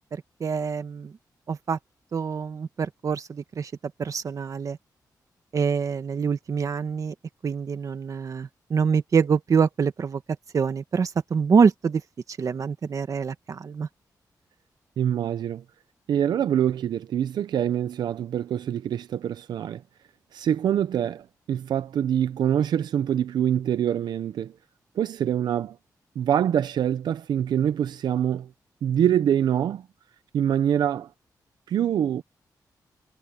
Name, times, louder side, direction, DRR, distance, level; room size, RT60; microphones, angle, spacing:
voice 1, 0.1-1.1 1.5-1.8 2.1-3.7 4.0-4.8 5.5-7.1 7.4-10.2 10.5-12.0 12.4-13.9, right 6 dB, 50° right, 1.5 m, -25 dB
voice 2, 15.0-15.6 16.1-19.8 20.3-24.5 25.0-25.8 26.2-28.5 28.8-29.9 30.3-31.1 31.7-32.2, right 9 dB, 90° right, 0.5 m, -25 dB
wide cardioid pair, 125°, 7 cm